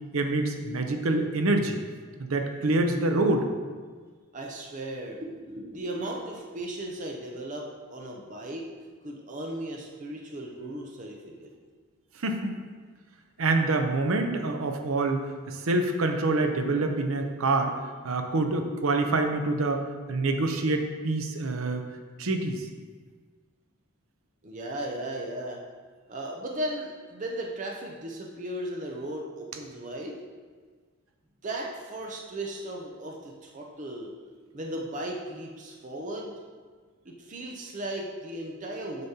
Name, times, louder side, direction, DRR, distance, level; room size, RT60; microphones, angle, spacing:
voice 1, 0.1-1.8 2.2-3.5 12.2-12.5 13.4-17.8 18.0-19.8 20.1-21.9 22.2-22.7, right 2 dB, 75° right, 5 dB, 0.6 m, -26 dB
voice 2, 4.3-8.7 9.0-11.5 24.4-25.6 26.1-30.2 31.4-34.1 34.5-36.3 37.0-39.1, right 1 dB, 35° right, 0 dB, 0.6 m, -36 dB
7.9 x 5.1 x 2.8 m, 1.5 s
head